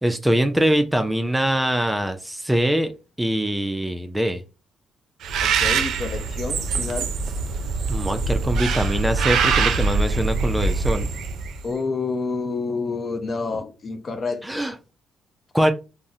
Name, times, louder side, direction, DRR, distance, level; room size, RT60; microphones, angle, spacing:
voice 1, 0.0-2.9 3.2-4.4 7.9-11.1 14.4-14.7 15.5-15.7, right 1 dB, 10° right, 0.3 m, -23 dB
Bird, 5.2-11.6, right 4 dB, 75° right, 0.4 m, -23 dB
voice 2, 5.4-7.1 11.6-14.6, left 4 dB, 45° left, 0.6 m, -28 dB
3.6 x 2.0 x 2.6 m
cardioid pair, 90°, 0 cm